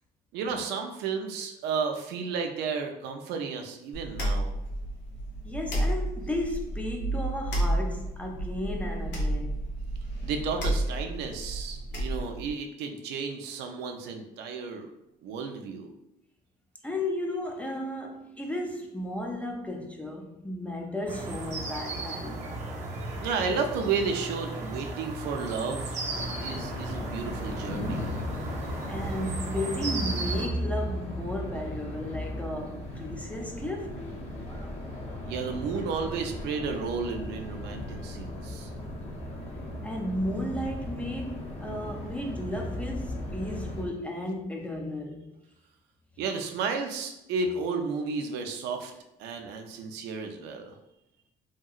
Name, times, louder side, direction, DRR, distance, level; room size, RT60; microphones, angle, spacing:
voice 1, 0.3-4.6 10.2-14.9 15.2-15.9 23.2-26.0 26.4-28.1 35.3-38.7 46.2-48.9 49.2-50.8, right 5 dB, 85° right, 0.4 m, -32 dB
sound 1, 3.9-12.5, right 1 dB, 85° left, 0.9 m, -31 dB
voice 2, 5.4-9.6 16.8-22.7 28.9-34.0 39.8-45.3, left 1 dB, 10° left, 0.4 m, -34 dB
sound 2, 21.1-30.5, right 2 dB, 45° right, 0.7 m, -36 dB
sound 3, 26.1-43.8, equal, 40° left, 0.7 m, -36 dB
2.8 x 2.8 x 2.3 m
cardioid pair, 110°, 17 cm